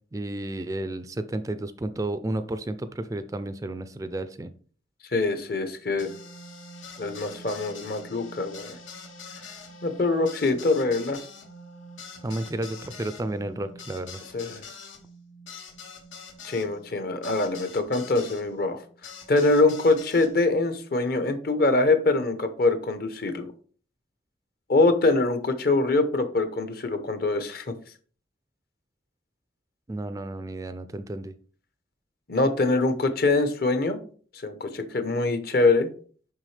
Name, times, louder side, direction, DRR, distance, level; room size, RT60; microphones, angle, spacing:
voice 1, 0.1-4.5 12.2-14.2 29.9-31.3, right 1 dB, 15° right, 11 dB, 0.3 m, -32 dB
voice 2, 5.1-6.1 7.0-8.8 9.8-11.2 14.3-14.7 16.4-18.8 19.3-23.5 24.7-27.7 32.3-34.0 34.3-35.9, left 2 dB, 50° left, 9 dB, 0.9 m, -24 dB
sound 1, 6.0-18.4 19.0-20.3, left 3 dB, 90° left, 1.3 m, -44 dB
7.4 x 5.6 x 3.3 m, 0.43 s
head